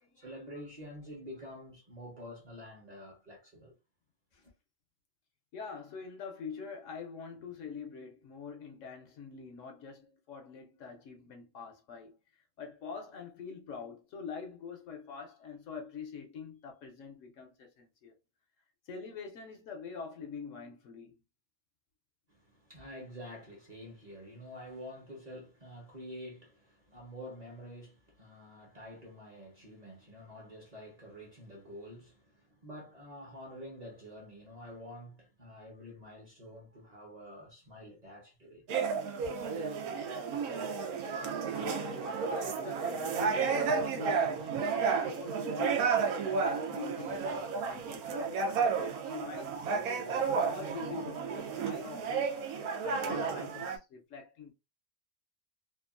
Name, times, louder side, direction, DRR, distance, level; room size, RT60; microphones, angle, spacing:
voice 1, 0.2-3.7 4.4-4.5 22.3-38.6 39.2-39.5, equal, 35° right, 0.8 m, -48 dB
voice 2, 5.5-18.1 18.9-21.2 41.0-48.1 48.6-54.5, left 5 dB, 70° left, 0.8 m, -45 dB
sound 1, 38.7-53.8, right 5 dB, 85° right, 1.1 m, -32 dB
2.8 x 2.3 x 2.4 m
omnidirectional pair, 1.5 m